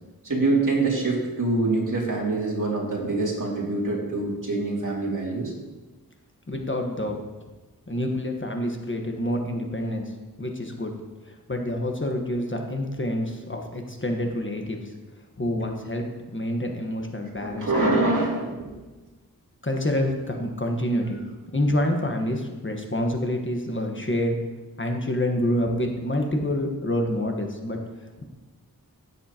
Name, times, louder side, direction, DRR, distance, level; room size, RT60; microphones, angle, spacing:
voice 1, 0.2-5.5 17.4-18.8, right 2 dB, 55° right, -3 dB, 2.8 m, -25 dB
voice 2, 6.5-7.2 7.9-10.1 10.4-10.9 11.5-14.8 15.4-16.1 16.3-17.9 19.6-24.4 24.8-27.8, left 1 dB, 30° left, 2 dB, 1.4 m, -27 dB
16.0 x 7.5 x 3.0 m, 1.2 s
wide cardioid pair, 60°, 37 cm